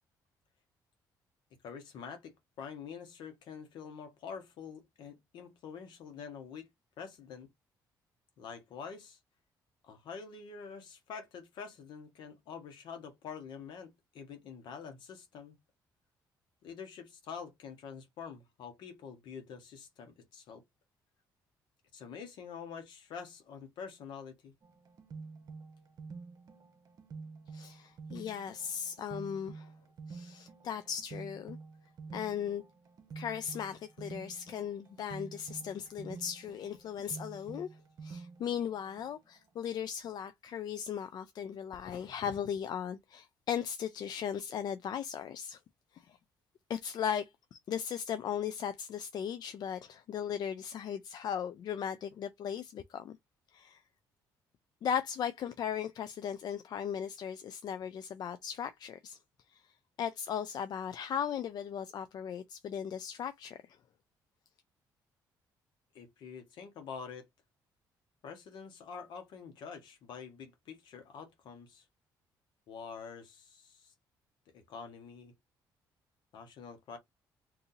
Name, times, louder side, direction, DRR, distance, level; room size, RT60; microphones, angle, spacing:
voice 1, 1.6-6.7 7.0-7.5 8.4-9.2 9.9-15.6 16.6-20.6 21.9-24.5 65.9-67.3 68.2-71.9 72.7-73.9 74.5-75.3 76.3-77.0, left 6 dB, 75° left, 1.2 m, -46 dB
sound 1, 24.6-39.5, right 4 dB, 55° right, 0.8 m, -49 dB
voice 2, 27.5-29.7 30.1-31.6 32.1-32.6 33.2-37.7 38.0-45.6 45.9-46.2 46.7-53.2 53.5-53.8 54.8-59.2 59.5-59.7 60.0-63.8, left 8 dB, 60° left, 0.4 m, -37 dB
2.7 x 2.6 x 3.9 m
cardioid pair, 90°, 8 cm